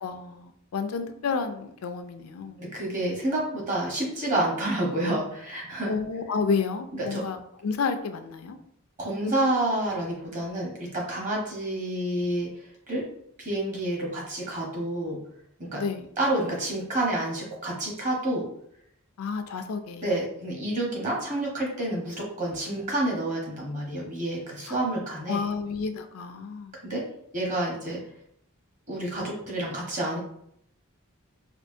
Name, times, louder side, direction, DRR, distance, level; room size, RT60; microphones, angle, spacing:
voice 1, 0.0-2.6 5.9-8.6 15.7-16.1 19.2-20.2 24.7-24.8 25.3-26.7, left 5 dB, 80° left, 9 dB, 0.4 m, -30 dB
voice 2, 2.6-5.9 7.0-7.2 9.0-12.5 12.9-13.1 13.4-15.2 15.6-15.8 16.2-18.5 20.0-25.4 26.9-27.0 27.3-28.0 28.9-30.2, right 1 dB, 35° right, -3 dB, 1.1 m, -29 dB
4.4 x 2.4 x 2.6 m, 0.71 s
head